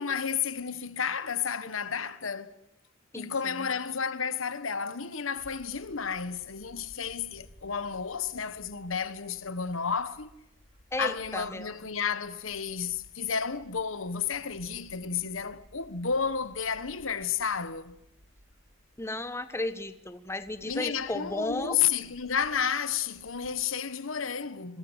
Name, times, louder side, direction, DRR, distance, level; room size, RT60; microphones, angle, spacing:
voice 1, 0.0-2.5 3.1-10.3 11.0-18.0 20.6-24.8, left 6 dB, 80° left, 1.3 m, -31 dB
Bird / Wind, 5.4-23.6, equal, 60° left, 7.2 m, -59 dB
voice 2, 10.9-11.7 19.0-21.8, left 2 dB, 15° left, 1.2 m, -34 dB
27.5 x 22.0 x 8.1 m
head